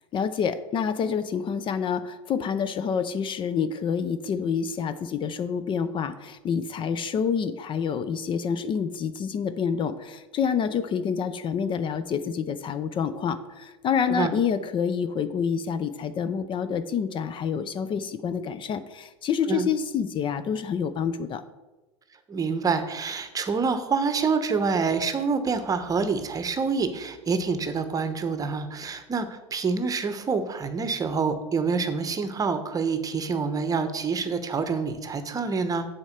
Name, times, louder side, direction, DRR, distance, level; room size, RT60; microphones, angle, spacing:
voice 1, 0.1-21.4, left 7 dB, 35° left, 12 dB, 0.5 m, -27 dB
voice 2, 22.3-35.9, right 5 dB, 25° right, 10 dB, 1.0 m, -27 dB
7.1 x 4.3 x 6.6 m, 1.1 s
hypercardioid pair, 90°, 15 cm